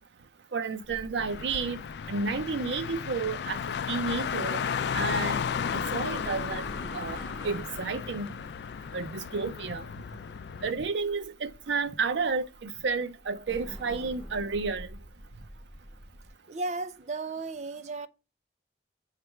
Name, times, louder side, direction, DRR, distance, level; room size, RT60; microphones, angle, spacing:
voice 1, 0.5-1.8 2.1-4.6 4.9-5.4 5.7-6.6 6.9-8.3 8.9-9.8 10.6-14.9, right 4 dB, 90° right, 0.6 m, -31 dB
sound 1, 0.8-16.3, equal, 5° left, 4.0 m, -48 dB
Car, 1.2-10.7, left 7 dB, 75° left, 0.3 m, -34 dB
voice 2, 16.5-18.1, right 3 dB, 40° right, 0.4 m, -34 dB
7.9 x 3.3 x 4.4 m
head